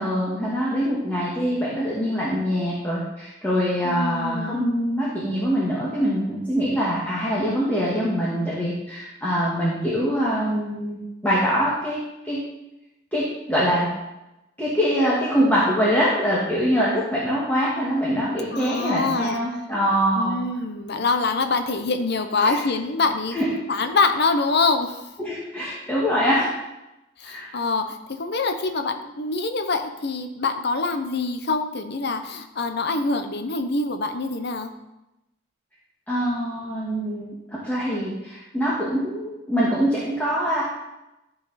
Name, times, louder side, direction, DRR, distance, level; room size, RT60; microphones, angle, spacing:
voice 1, 0.0-12.0 12.2-12.4 13.1-13.9 14.6-20.4 22.4-22.6 23.3-23.5 25.2-26.5 27.2-27.5 36.1-40.6, equal, 10° left, -8 dB, 1.8 m, -24 dB
voice 2, 3.8-4.7 18.5-19.4 20.1-23.4 23.7-25.0 27.2-34.7, left 3 dB, 60° left, 7 dB, 0.8 m, -25 dB
13.5 x 5.0 x 4.2 m, 0.95 s
head